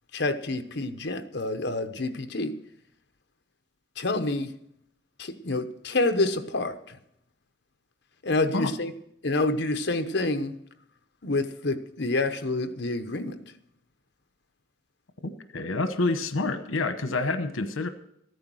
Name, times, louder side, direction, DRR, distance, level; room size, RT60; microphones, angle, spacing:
voice 1, 0.1-2.6 4.0-4.5 5.2-7.0 8.2-8.9 9.2-10.5 11.2-13.4, left 2 dB, 55° left, 8 dB, 0.9 m, -28 dB
voice 2, 15.2-17.9, left 3 dB, 85° left, 9 dB, 1.0 m, -28 dB
14.0 x 9.5 x 6.2 m, 0.75 s
head